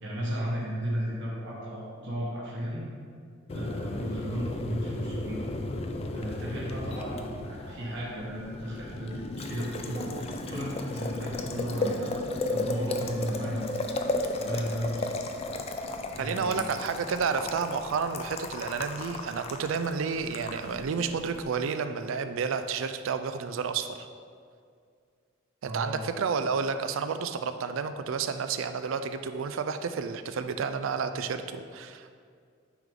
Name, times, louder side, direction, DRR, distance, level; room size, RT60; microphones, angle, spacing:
voice 1, 0.0-2.9 3.5-5.4 6.1-12.1 12.5-13.8 14.2-15.4 16.1-16.7 25.6-26.0, equal, 60° right, -6 dB, 1.1 m, -34 dB
Boiling, 3.5-21.4, left 2 dB, 30° left, 0.3 m, -35 dB
voice 2, 16.2-24.1 25.6-32.1, right 5 dB, 75° right, 10 dB, 0.4 m, -31 dB
9.0 x 3.7 x 3.5 m, 2.2 s
head